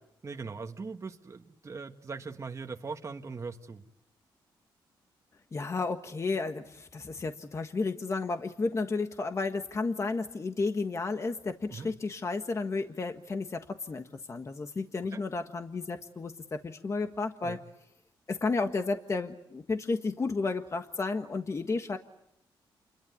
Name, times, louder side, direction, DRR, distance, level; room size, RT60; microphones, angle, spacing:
voice 1, 0.2-3.8 11.7-11.9 15.1-15.2 17.4-17.6, right 4 dB, 35° right, 4 dB, 1.5 m, -40 dB
voice 2, 5.5-17.6 18.3-22.0, left 3 dB, 35° left, 6 dB, 1.5 m, -32 dB
29.0 x 22.0 x 8.4 m, 0.79 s
cardioid pair, 90°, 9 cm